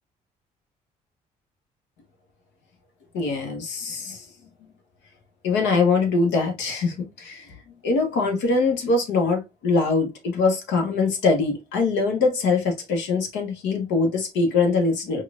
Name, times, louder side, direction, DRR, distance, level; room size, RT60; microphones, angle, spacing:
voice 1, 3.1-4.3 5.4-7.5 7.8-15.2, left 4 dB, 70° left, 1.1 m, -23 dB
4.7 x 2.4 x 2.4 m
hypercardioid pair, 50°, 20 cm